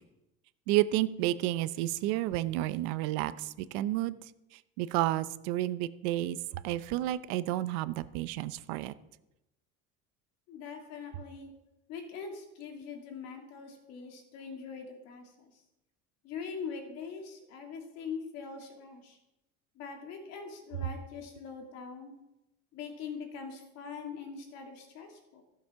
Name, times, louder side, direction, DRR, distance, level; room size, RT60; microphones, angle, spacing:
voice 1, 0.7-4.2 4.5-8.9, right 15 dB, 85° right, 15 dB, 0.7 m, -31 dB
voice 2, 10.5-11.5 11.9-15.5 16.2-19.2 19.8-22.1 22.7-25.4, left 5 dB, 55° left, 3 dB, 2.5 m, -42 dB
15.5 x 7.1 x 5.7 m, 0.92 s
cardioid pair, 170°, 31 cm